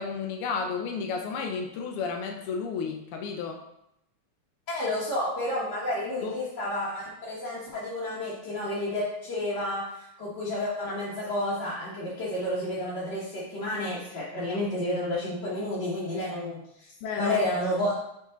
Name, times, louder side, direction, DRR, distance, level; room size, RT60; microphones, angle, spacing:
voice 1, 0.0-3.6 6.2-6.3 17.0-17.4, left 5 dB, 85° left, 3 dB, 1.6 m, -32 dB
voice 2, 4.7-16.9 17.2-17.9, left 1 dB, 55° left, -10 dB, 1.9 m, -30 dB
5.3 x 4.6 x 3.9 m, 0.80 s
omnidirectional pair, 2.4 m